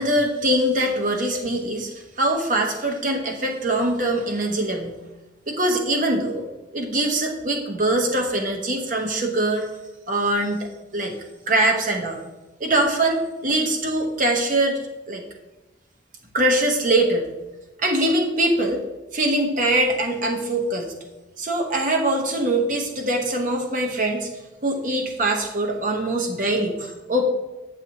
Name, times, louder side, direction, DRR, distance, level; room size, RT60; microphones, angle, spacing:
voice 1, 0.0-5.0 5.5-6.4 6.7-9.7 10.1-11.2 11.5-12.2 12.6-14.8 15.1-15.2 16.3-17.3 17.8-18.8 19.1-20.9 21.4-24.3 24.6-27.2, right 1 dB, 40° right, 2 dB, 1.0 m, -23 dB
9.1 x 6.8 x 2.9 m, 1.1 s
head